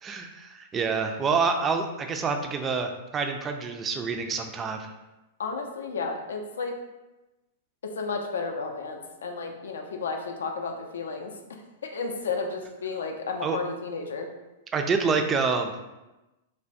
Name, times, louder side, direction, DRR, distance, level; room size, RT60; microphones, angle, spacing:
voice 1, 0.0-4.9 13.4-13.6 14.7-15.7, right 5 dB, 25° right, 5 dB, 0.3 m, -27 dB
voice 2, 5.4-6.7 7.8-11.3 11.8-14.3, left 4 dB, 70° left, 3 dB, 0.4 m, -32 dB
3.2 x 2.2 x 2.6 m, 1.0 s
figure-of-eight pair, 105°, 0 cm